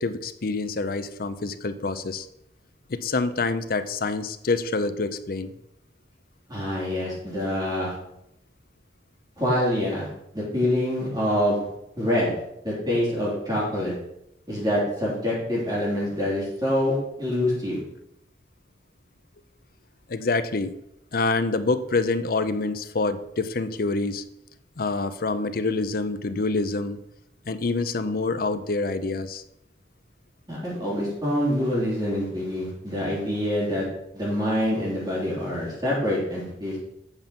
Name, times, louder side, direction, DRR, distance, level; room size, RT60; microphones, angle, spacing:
voice 1, 0.0-2.3 2.9-5.5 20.1-20.8 21.1-24.2 24.8-27.0 27.5-29.4, left 3 dB, 55° left, 11 dB, 0.6 m, -26 dB
voice 2, 6.5-7.9 9.4-10.1 10.3-11.6 12.0-12.3 12.6-13.9 14.5-17.8 30.5-33.9 34.1-36.8, left 1 dB, 25° right, -7 dB, 3.2 m, -26 dB
8.1 x 5.4 x 5.7 m, 0.81 s
head